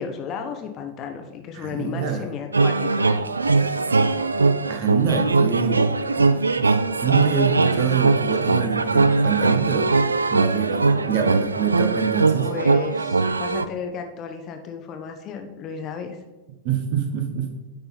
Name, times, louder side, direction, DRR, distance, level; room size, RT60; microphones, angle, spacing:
voice 1, 0.0-3.1 12.4-16.2, left 6 dB, 35° left, 5 dB, 0.9 m, -33 dB
voice 2, 1.5-2.3 4.7-5.9 6.2-6.7 7.0-10.0 10.3-12.5 16.6-17.5, right 7 dB, 45° right, 6 dB, 0.9 m, -25 dB
sound 1, 2.5-13.7, right 3 dB, 80° right, 0.3 m, -21 dB
9.9 x 4.2 x 4.0 m, 1.1 s
figure-of-eight pair, 90°, 0 cm